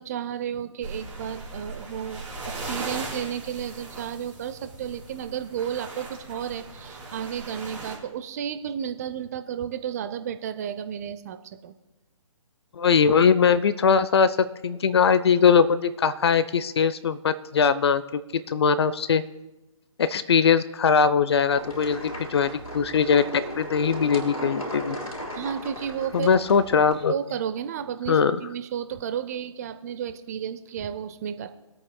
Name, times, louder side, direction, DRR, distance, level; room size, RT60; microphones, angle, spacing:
voice 1, 0.0-11.7 25.3-26.3 27.1-31.5, right 8 dB, 30° right, 10 dB, 0.6 m, -32 dB
sound 1, 0.8-8.0, right 2 dB, 10° right, 4.3 m, -38 dB
voice 2, 12.8-14.4 14.6-19.2 20.0-25.0 26.1-27.1 28.1-28.4, left 6 dB, 50° left, 15 dB, 0.6 m, -21 dB
sound 2, 21.6-27.0, equal, 90° left, 4.7 m, -36 dB
24.0 x 8.8 x 2.3 m, 1.0 s
figure-of-eight pair, 140°, 17 cm